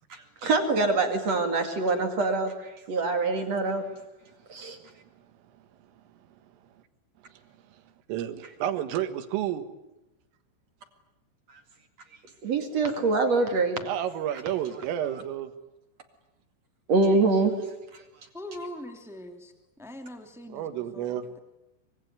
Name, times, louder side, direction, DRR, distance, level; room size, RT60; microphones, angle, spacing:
voice 1, 0.1-3.8 4.5-4.8 12.4-13.8 16.9-17.5 17.9-18.0, right 3 dB, 45° right, 6 dB, 2.5 m, -25 dB
voice 2, 8.1-9.6 13.8-15.5 20.5-21.2, right 11 dB, 90° right, 9 dB, 4.3 m, -30 dB
voice 3, 18.3-21.4, left 1 dB, ahead, 5 dB, 0.6 m, -42 dB
24.5 x 24.0 x 9.6 m, 0.96 s
omnidirectional pair, 5.7 m